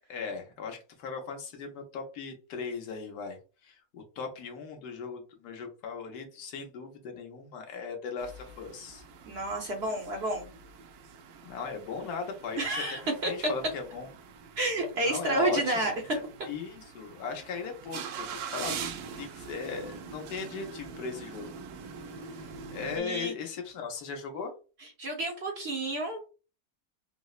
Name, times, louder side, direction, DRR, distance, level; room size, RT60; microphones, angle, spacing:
voice 1, 0.1-9.0 11.4-14.1 15.0-16.2 16.5-18.8 19.2-21.5 22.3-24.5, left 5 dB, 85° left, 3 dB, 1.3 m, -38 dB
sound 1, 8.2-23.0, right 6 dB, 80° right, 1.1 m, -43 dB
voice 2, 9.3-10.5 12.6-13.3 14.6-15.9 23.0-23.3 25.0-26.3, right 2 dB, 55° right, 1 dB, 0.8 m, -30 dB
3.9 x 2.0 x 2.3 m, 0.34 s
omnidirectional pair, 1.6 m